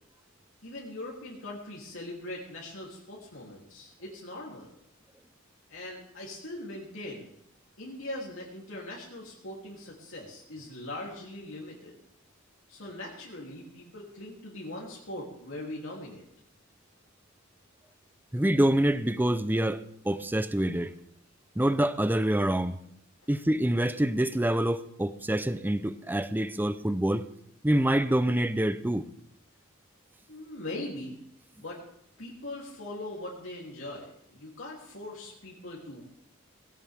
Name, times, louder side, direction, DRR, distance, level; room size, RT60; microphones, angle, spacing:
voice 1, 0.6-4.7 5.7-7.3 7.8-12.0 12.7-16.2 30.3-31.1 31.6-31.8 32.2-36.0, left 1 dB, 70° left, -4 dB, 3.1 m, -41 dB
voice 2, 18.3-20.9 21.6-22.8 23.3-27.3 27.6-29.1, right 1 dB, 10° right, 13 dB, 0.6 m, -26 dB
18.0 x 17.0 x 3.6 m, 0.73 s
head